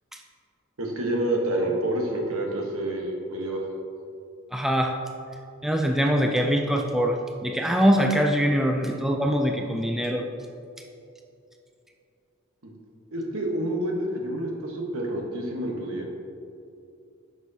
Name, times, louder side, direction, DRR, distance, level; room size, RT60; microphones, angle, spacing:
voice 1, 0.8-3.6 8.9-9.0 13.1-16.1, right 1 dB, 80° right, 0 dB, 1.2 m, -28 dB
voice 2, 4.5-5.0 5.6-10.2, equal, ahead, 2 dB, 0.3 m, -23 dB
9.9 x 6.1 x 2.7 m, 2.6 s
head